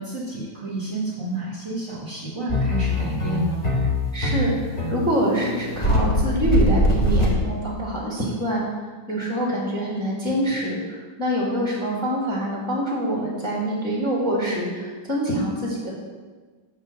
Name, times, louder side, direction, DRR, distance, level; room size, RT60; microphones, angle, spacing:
voice 1, 0.0-3.6, right 2 dB, 40° right, -7 dB, 1.5 m, -30 dB
sound 1, 2.5-8.0, left 1 dB, 20° left, 1.1 m, -22 dB
voice 2, 4.1-8.6 9.1-15.9, equal, ahead, -4 dB, 1.5 m, -25 dB
7.3 x 3.7 x 6.4 m, 1.4 s
omnidirectional pair, 2.4 m